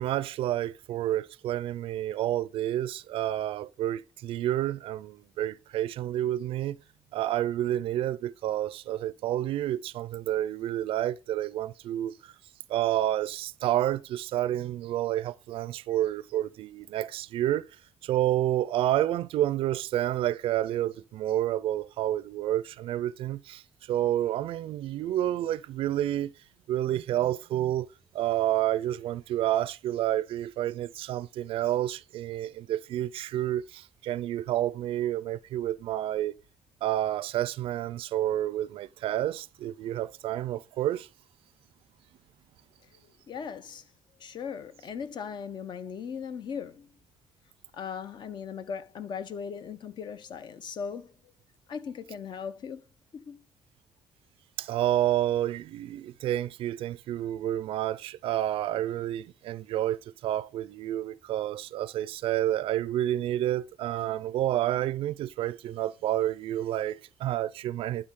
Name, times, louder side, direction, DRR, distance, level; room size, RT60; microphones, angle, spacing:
voice 1, 0.0-6.8 7.1-12.3 12.7-17.6 18.0-26.3 26.7-27.9 28.1-36.3 36.8-41.1 54.6-68.1, right 13 dB, 80° right, 0.4 m, -29 dB
voice 2, 43.3-43.8 44.2-46.9 47.7-51.1 51.7-52.8 53.1-53.4, left 6 dB, 55° left, 0.7 m, -38 dB
11.0 x 4.0 x 3.7 m
cardioid pair, 125°, 9 cm